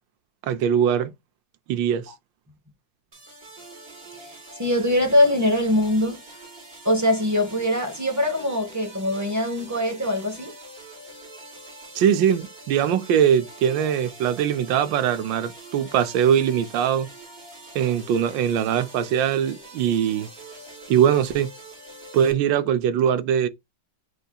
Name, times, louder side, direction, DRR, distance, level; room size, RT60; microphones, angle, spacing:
voice 1, 0.4-1.1 1.7-2.0 11.9-17.1 17.7-20.3 20.9-21.5 22.1-23.5, right 9 dB, 80° right, 1.3 m, -21 dB
sound 1, 3.1-22.3, right 2 dB, 35° right, 1.7 m, -44 dB
voice 2, 4.6-6.2 6.8-10.5, left 1 dB, 15° right, 0.7 m, -22 dB
7.8 x 2.8 x 2.3 m
omnidirectional pair, 2.1 m